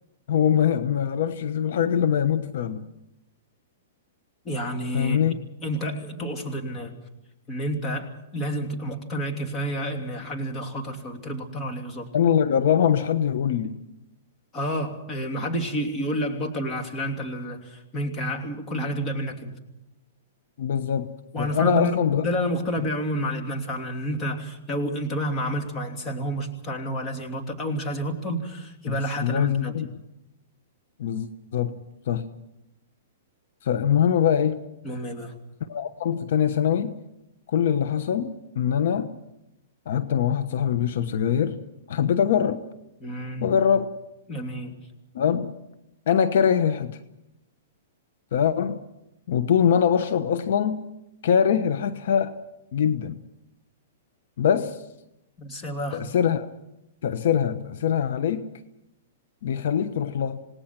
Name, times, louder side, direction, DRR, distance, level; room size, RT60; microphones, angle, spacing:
voice 1, 0.3-2.9 4.9-5.3 12.1-13.8 20.6-22.2 22.8-22.9 28.9-29.9 31.0-31.8 32.1-32.3 33.6-34.6 35.7-37.0 37.5-39.1 39.9-41.6 41.9-42.6 43.4-43.9 45.1-45.5 46.1-47.0 48.3-48.8 49.3-50.8 51.2-52.4 52.7-53.2 54.4-54.8 55.9-56.5 57.0-58.5 59.4-60.4, left 8 dB, 65° left, 12 dB, 1.1 m, -23 dB
voice 2, 4.4-5.3 5.6-6.9 7.5-12.1 14.5-19.6 21.3-21.9 22.2-29.8 34.8-35.3 43.0-43.6 44.3-44.8 55.4-56.0, equal, 20° left, 2 dB, 2.9 m, -30 dB
27.5 x 18.5 x 6.0 m, 0.89 s
hypercardioid pair, 145°, 0 cm